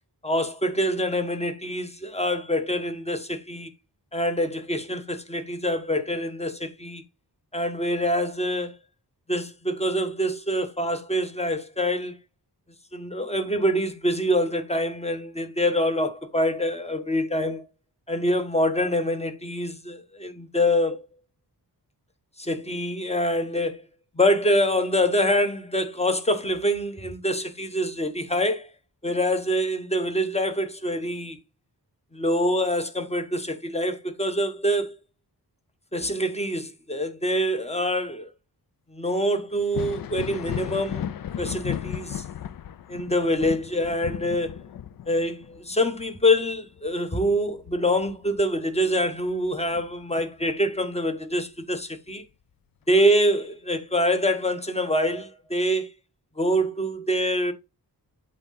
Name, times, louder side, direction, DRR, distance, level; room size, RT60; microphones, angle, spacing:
voice 1, 0.2-3.7 4.1-7.0 7.5-8.8 9.3-12.2 12.9-17.6 18.1-21.0 22.4-23.8 24.1-28.7 29.0-31.4 32.1-34.9 35.9-38.3 38.9-41.1 41.4-42.2 42.9-44.6 45.1-52.2 52.9-55.9 56.4-57.5, equal, 15° left, 1.0 m, -25 dB
Thunder, 39.6-48.9 49.3-50.5 52.1-52.2 53.0-53.1, left 10 dB, 60° left, 0.5 m, -36 dB
7.8 x 3.7 x 4.1 m
wide cardioid pair, 95°, 40 cm